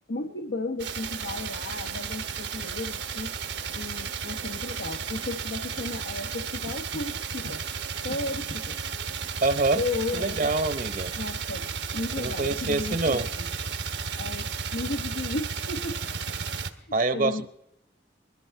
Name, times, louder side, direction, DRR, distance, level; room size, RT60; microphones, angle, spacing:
voice 1, 0.1-3.3 3.7-7.6 8.0-8.8 9.7-10.5 11.1-11.7 11.9-13.5 14.1-16.0 16.7-17.5, left 2 dB, 90° left, 5 dB, 1.0 m, -34 dB
sound 1, 0.8-16.7, right 6 dB, 85° right, 1.2 m, -33 dB
voice 2, 9.4-9.8 10.1-11.1 12.2-13.3 16.9-17.5, right 3 dB, 50° right, 11 dB, 0.8 m, -25 dB
21.5 x 13.0 x 4.6 m, 0.82 s
head